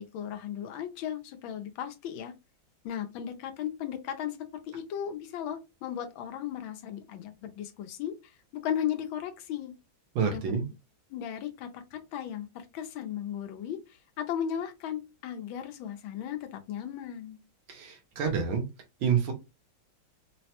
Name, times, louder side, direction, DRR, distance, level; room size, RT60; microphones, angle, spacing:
voice 1, 0.0-2.3 2.8-4.4 4.6-9.7 10.3-10.6 11.1-17.4, left 9 dB, 85° left, 1.4 m, -36 dB
voice 2, 10.1-10.6 17.7-18.6 19.0-19.3, right 7 dB, 80° right, 1.5 m, -28 dB
3.9 x 2.1 x 2.8 m
omnidirectional pair, 2.1 m